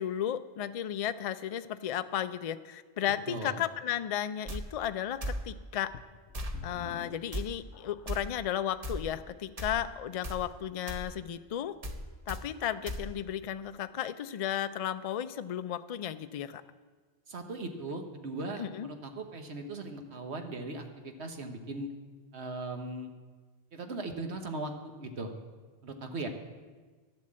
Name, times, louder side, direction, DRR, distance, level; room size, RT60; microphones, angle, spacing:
voice 1, 0.0-5.2 5.4-5.9 6.6-11.7 12.3-16.6 18.6-18.9, left 10 dB, 60° left, 12 dB, 0.3 m, -34 dB
voice 2, 3.3-3.6 17.3-21.9 22.3-23.1 23.7-25.3 25.8-26.3, right 2 dB, 70° right, 5 dB, 1.4 m, -38 dB
sound 1, 4.5-4.6 5.2-5.4 6.3-6.6 7.3-7.5 8.1-8.2 8.8-9.0 9.6-9.8 10.2-10.4 10.9-11.0 11.8-12.0 12.3-12.4 12.9-13.0, equal, 35° right, 1.0 m, -36 dB
sound 2, 5.9-8.4 9.0-9.1 9.7-9.8, left 8 dB, 85° left, 0.9 m, -49 dB
11.5 x 7.5 x 7.5 m, 1.4 s
omnidirectional pair, 1.2 m